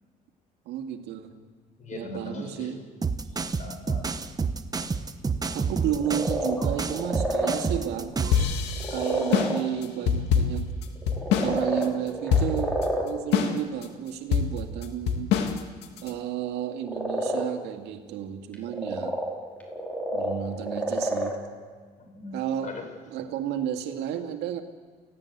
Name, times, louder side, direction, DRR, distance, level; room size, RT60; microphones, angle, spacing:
voice 1, 0.7-1.4 1.9-2.8 5.5-8.5 8.9-10.7 11.4-15.3 16.0-19.2 20.1-21.4 22.3-22.7 23.1-24.6, right 10 dB, 85° right, 5 dB, 2.1 m, -32 dB
voice 2, 1.8-2.7 3.3-4.1 22.0-22.4 22.6-22.9, left 2 dB, 45° left, 4 dB, 5.5 m, -39 dB
sound 1, 3.0-8.5, right 5 dB, 20° right, 1.2 m, -29 dB
sound 2, 6.0-7.6 8.2-8.3 8.7-9.6 11.0-13.1 16.7-17.4 18.5-21.3, equal, 10° left, 5.3 m, -29 dB
sound 3, 8.3-11.6 11.8-11.9 12.3-12.8 13.3-13.8 14.3-16.1, left 7 dB, 90° left, 2.1 m, -24 dB
29.5 x 17.0 x 8.2 m, 1.5 s
cardioid pair, 110°, 17 cm